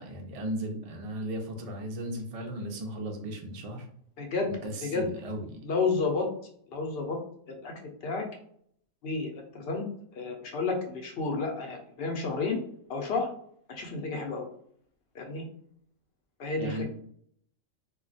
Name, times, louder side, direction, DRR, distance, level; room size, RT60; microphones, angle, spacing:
voice 1, 0.0-3.9 4.4-5.6 16.6-16.8, right 1 dB, 65° right, 2 dB, 0.3 m, -36 dB
voice 2, 4.2-4.5 4.8-5.1 5.6-6.3 6.7-7.2 7.5-7.7 8.0-8.2 9.0-9.8 10.1-12.6 12.9-13.3 13.7-14.5 15.1-15.4 16.4-16.8, left 4 dB, 60° left, 2 dB, 0.8 m, -31 dB
2.3 x 2.2 x 3.9 m, 0.65 s
omnidirectional pair, 1.3 m